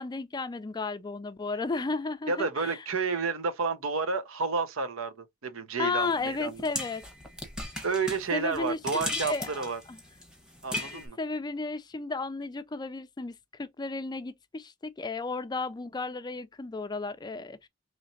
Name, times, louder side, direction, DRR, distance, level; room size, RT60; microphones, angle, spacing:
voice 1, 0.0-2.8 5.8-7.0 8.3-10.0 10.7-17.7, left 3 dB, 20° left, 0.4 m, -34 dB
voice 2, 2.3-6.6 7.8-9.8 10.6-11.2, right 4 dB, 80° right, 0.7 m, -30 dB
sound 1, 6.0-11.1, left 1 dB, 5° right, 1.2 m, -37 dB
4.1 x 3.1 x 2.6 m
head